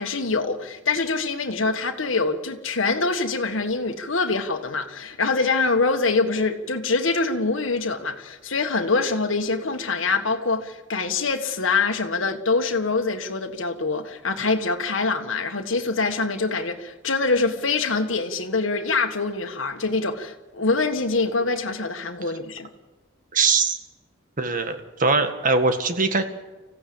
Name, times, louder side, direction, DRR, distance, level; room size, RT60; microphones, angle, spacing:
voice 1, 0.0-22.7, left 3 dB, 70° left, 1.7 m, -24 dB
voice 2, 23.3-23.8 24.4-26.2, right 4 dB, 40° right, 1.8 m, -21 dB
25.0 x 15.5 x 8.7 m
head